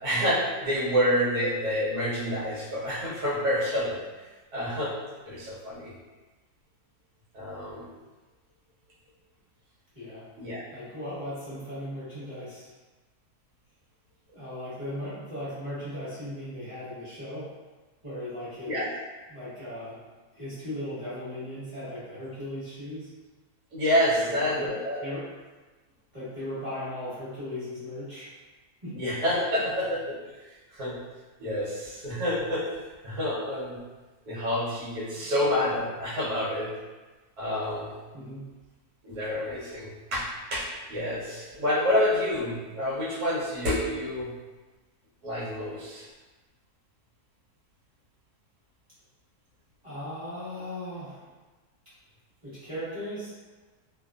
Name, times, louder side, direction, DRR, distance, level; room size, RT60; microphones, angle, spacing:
voice 1, 0.0-4.2 4.5-4.9 5.2-5.9 7.3-7.9 10.4-10.6 18.7-18.8 23.7-25.0 28.9-31.0 31.4-32.8 33.0-33.8 34.2-36.7 37.4-37.9 39.0-44.3 45.2-46.1, left 1 dB, 75° right, -6 dB, 1.3 m, -28 dB
voice 2, 10.7-12.7 14.3-17.5 18.0-18.8 19.3-20.0 20.3-23.1 24.2-24.7 25.0-25.2 26.1-28.3 28.8-29.0 38.1-38.5 49.8-51.3 52.4-53.3, left 1 dB, 20° right, -13 dB, 1.3 m, -37 dB
2.8 x 2.3 x 2.3 m, 1.2 s
omnidirectional pair, 1.7 m